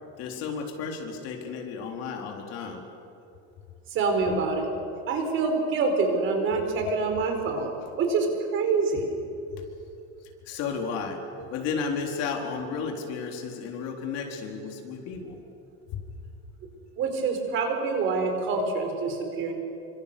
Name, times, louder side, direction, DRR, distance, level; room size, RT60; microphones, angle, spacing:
voice 1, 0.2-2.8 9.5-9.6 10.5-11.2 11.5-15.4, left 5 dB, 50° left, 3 dB, 3.9 m, -33 dB
voice 2, 3.9-4.7 5.1-9.0 17.0-19.5, right 4 dB, 40° right, 4 dB, 4.8 m, -26 dB
29.0 x 25.5 x 6.9 m, 2.6 s
cardioid pair, 160°, 32 cm